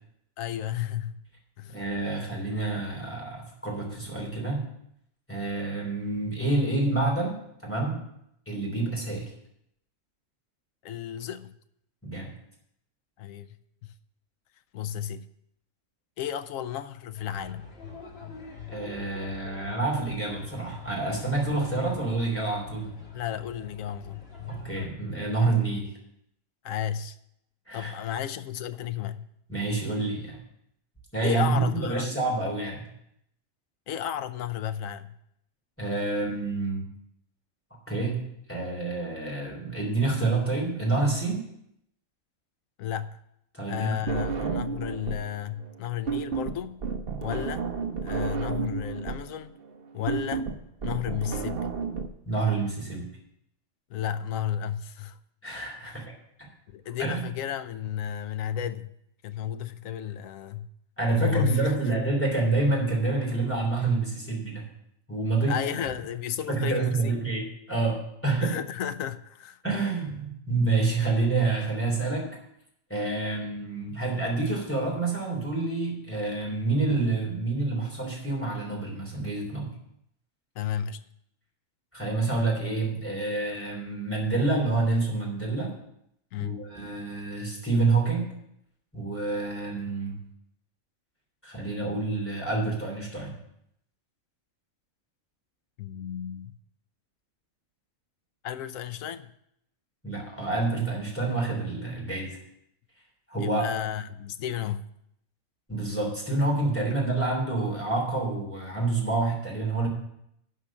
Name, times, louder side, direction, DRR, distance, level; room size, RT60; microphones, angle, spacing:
voice 1, 0.4-1.2 1.6-1.8 10.8-11.5 13.2-13.5 13.8-13.9 14.7-15.3 16.2-17.7 23.1-24.2 26.6-27.2 27.7-29.3 31.2-32.1 33.9-35.1 42.8-43.2 43.7-46.8 47.2-47.6 48.0-49.6 49.9-50.5 50.8-51.7 53.9-55.2 56.7-58.9 59.2-60.7 61.1-61.7 65.5-67.1 68.4-69.6 80.6-81.0 86.3-86.6 95.8-96.5 98.4-99.3 103.4-104.8, left 9 dB, 85° left, 12 dB, 1.1 m, -33 dB
voice 2, 1.7-4.6 5.3-7.4 7.6-8.0 8.5-9.3 12.0-12.3 18.7-22.9 24.5-25.9 27.7-27.9 29.5-30.4 31.1-32.8 35.8-36.8 37.9-38.2 38.5-41.4 43.5-44.6 52.2-53.1 55.4-56.0 57.0-57.3 61.0-64.7 65.1-65.6 66.5-68.5 69.6-72.3 72.9-79.7 81.9-85.7 86.4-88.3 88.9-90.1 91.4-93.3 100.0-102.4 103.3-103.6 105.7-109.9, right 3 dB, 10° left, -2 dB, 3.2 m, -28 dB
sound 1, 17.1-24.9, left 7 dB, 50° left, 1.9 m, -44 dB
sound 2, 44.1-45.3 45.6-52.1, right 5 dB, 50° right, 1.0 m, -31 dB
11.5 x 5.0 x 7.3 m, 0.76 s
omnidirectional pair, 1.4 m